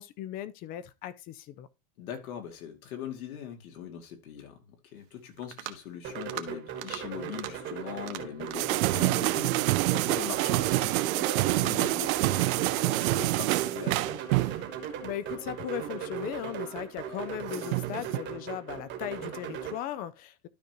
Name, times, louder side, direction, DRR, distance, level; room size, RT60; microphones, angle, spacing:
voice 1, 0.0-1.7 15.0-20.5, left 11 dB, 25° left, 0.4 m, -37 dB
voice 2, 2.0-14.2, left 9 dB, 90° left, 2.6 m, -41 dB
sound 1, 5.4-5.8 6.2-6.5 6.8-7.0 7.3-7.5 7.9-8.7 9.1-9.9, right 15 dB, 55° right, 1.2 m, -40 dB
sound 2, 6.0-19.8, right 7 dB, 25° right, 1.3 m, -38 dB
sound 3, 8.5-14.7 15.4-16.0 17.0-18.2, right 19 dB, 75° right, 0.6 m, -27 dB
12.5 x 5.1 x 3.0 m
supercardioid pair, 155°, 41 cm